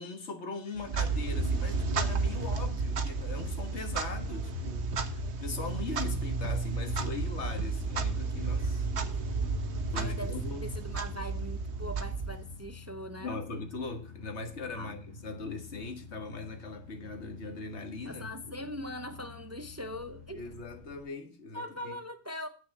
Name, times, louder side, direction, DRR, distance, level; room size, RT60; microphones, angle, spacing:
voice 1, 0.0-8.9 9.1-9.2 9.9-10.6 13.2-18.7 20.3-22.0, left 3 dB, 85° left, 1.7 m, -40 dB
Clock, 0.8-12.7, right 3 dB, 75° right, 1.3 m, -32 dB
sound 1, 8.7-21.1, left 5 dB, 15° left, 4.4 m, -50 dB
voice 2, 9.9-13.4 14.7-14.9 18.0-20.4 21.5-22.5, equal, 20° right, 0.5 m, -41 dB
8.2 x 6.1 x 7.1 m
omnidirectional pair, 1.1 m